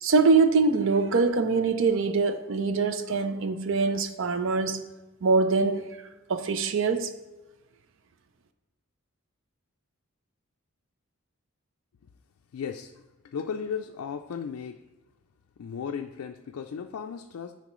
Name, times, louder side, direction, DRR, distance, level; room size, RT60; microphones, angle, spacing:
voice 1, 0.0-4.8 5.2-5.9 6.3-7.1, right 4 dB, 60° right, 0.5 m, -23 dB
voice 2, 12.5-12.9 13.2-14.8 15.6-17.5, left 6 dB, 85° left, 0.4 m, -35 dB
10.5 x 4.3 x 3.1 m
head